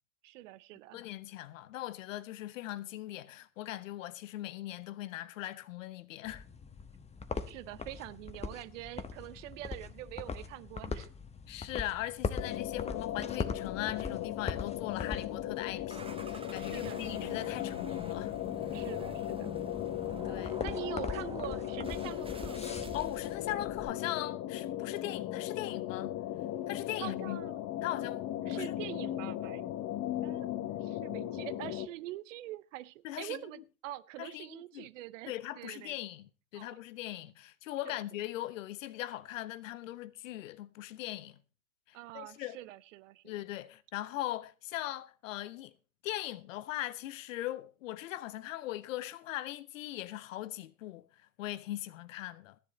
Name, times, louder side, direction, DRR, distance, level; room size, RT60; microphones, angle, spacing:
voice 1, 0.2-1.0 7.5-11.1 16.7-17.4 18.7-19.5 20.6-22.7 27.0-27.7 28.4-29.9 30.2-30.5 30.8-36.0 36.5-36.8 37.9-38.0 41.9-43.3, right 16 dB, 60° right, 0.7 m, -45 dB
voice 2, 0.9-6.5 11.5-18.3 20.2-20.6 22.9-26.1 26.7-27.4 27.8-28.7 33.0-33.6 34.2-34.9 35.3-41.4 41.9-42.6 43.2-45.7 46.0-52.6, left 14 dB, 65° left, 0.9 m, -40 dB
sound 1, 6.2-23.9, left 5 dB, 15° left, 1.0 m, -42 dB
sound 2, 12.4-31.9, left 13 dB, 40° left, 1.2 m, -37 dB
sound 3, 15.9-23.5, right 3 dB, 15° right, 1.4 m, -48 dB
14.5 x 10.5 x 4.1 m
figure-of-eight pair, 80°, 42 cm